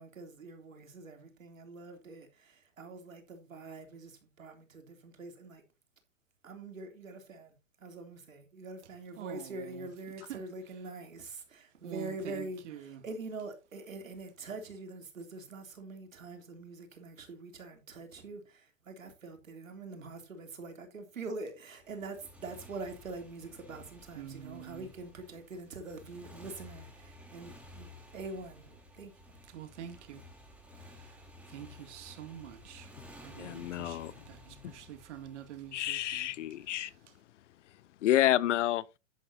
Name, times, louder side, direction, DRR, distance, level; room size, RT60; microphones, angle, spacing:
voice 1, 0.0-5.6 6.4-29.1, right 3 dB, 90° right, 3.3 m, -44 dB
voice 2, 9.2-9.9 10.3-10.4 11.8-13.0 24.1-24.9 29.5-30.2 30.8-31.1 31.4-36.3, right 10 dB, 60° right, 2.3 m, -46 dB
Motorcycle, 21.8-36.9, left 1 dB, 5° right, 3.6 m, -54 dB
voice 3, 33.4-34.1 34.6-34.7 35.7-36.9 38.0-38.8, left 13 dB, 65° left, 0.8 m, -29 dB
11.0 x 9.4 x 2.8 m
hypercardioid pair, 120°, 39 cm